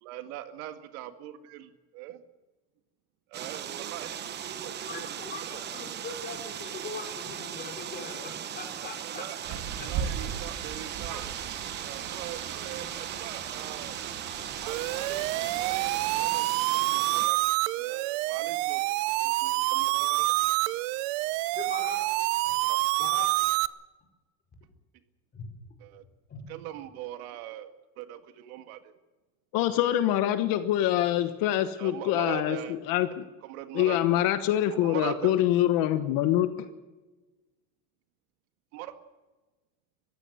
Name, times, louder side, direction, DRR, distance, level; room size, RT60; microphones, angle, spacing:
voice 1, 0.0-1.7 1.9-2.2 3.3-5.6 8.8-9.6 9.9-11.2 11.6-14.0 14.6-17.4 17.7-18.9 19.2-20.4 22.6-22.8 25.8-26.0 26.5-27.7 28.0-28.9 31.8-32.8 33.4-34.0 34.6-35.3 38.7-39.0, right 13 dB, 90° right, 8 dB, 2.0 m, -41 dB
sound 1, 3.3-17.3, right 9 dB, 25° right, 0.9 m, -38 dB
voice 2, 4.8-9.5 21.5-22.0 23.0-23.3 25.3-25.4 26.3-26.4, left 4 dB, 20° left, 2 dB, 4.8 m, -41 dB
Rain, 9.4-16.2, right 8 dB, 45° right, 2.4 m, -38 dB
sound 2, 14.7-23.7, right 20 dB, 70° right, 0.8 m, -27 dB
voice 3, 29.5-33.3 33.7-36.7, left 12 dB, 50° left, 10 dB, 1.3 m, -25 dB
23.0 x 15.5 x 8.0 m, 1.2 s
cardioid pair, 165°, 42 cm